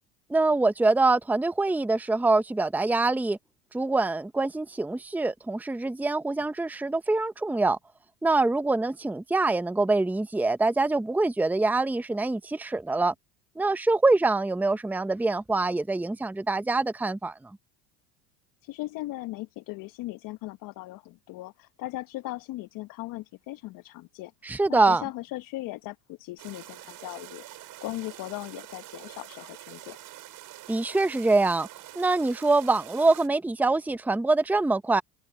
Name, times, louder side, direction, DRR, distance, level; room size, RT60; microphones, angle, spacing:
voice 1, 0.3-3.4 3.7-7.8 8.2-13.1 13.6-17.5 24.4-25.0 30.7-31.7 31.9-35.0, right 3 dB, 5° right, 0.9 m, -24 dB
voice 2, 18.6-30.0, left 18 dB, 60° left, 1.2 m, -38 dB
sound 1, 26.4-33.3, right 15 dB, 55° right, 7.9 m, -46 dB
supercardioid pair, 90°, 38 cm